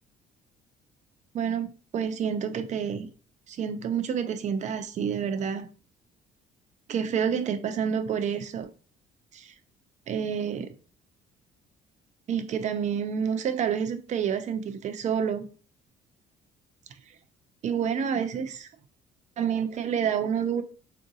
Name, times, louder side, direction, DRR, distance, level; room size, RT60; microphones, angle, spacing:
voice 1, 1.3-3.1 3.5-5.7 6.9-8.7 9.3-9.5 10.1-10.7 12.3-15.5 17.6-18.7 19.4-20.6, right 7 dB, 45° right, 0.4 m, -28 dB
3.6 x 2.5 x 2.6 m
cardioid pair, 110°, 17 cm